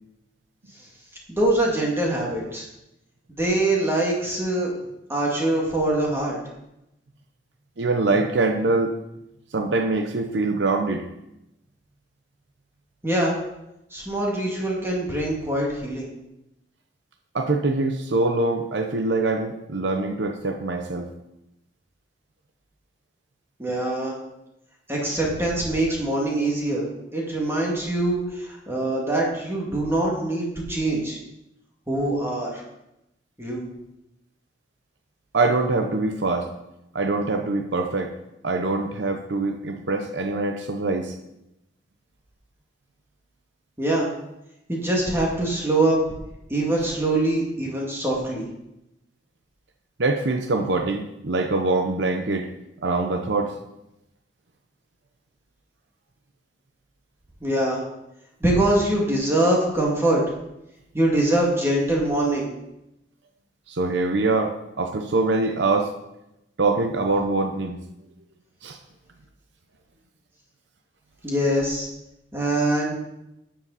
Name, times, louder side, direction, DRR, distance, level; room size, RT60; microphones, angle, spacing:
voice 1, 1.3-2.7 3.4-4.7 5.1-6.4 13.0-13.4 13.9-16.1 23.6-24.1 24.9-26.8 27.1-31.2 31.9-32.6 33.4-33.6 43.8-44.1 44.7-46.0 46.5-48.5 57.4-57.8 58.4-60.2 60.9-62.5 71.2-71.9 72.3-72.9, right 1 dB, 15° right, -3 dB, 2.3 m, -23 dB
voice 2, 7.8-9.0 9.5-11.0 17.3-21.1 35.3-36.5 36.9-38.1 38.4-41.2 50.0-52.5 52.8-53.5 63.7-65.9 66.6-67.8 68.6-68.8, right 3 dB, 70° right, 5 dB, 0.8 m, -24 dB
12.0 x 7.7 x 4.1 m, 0.87 s
head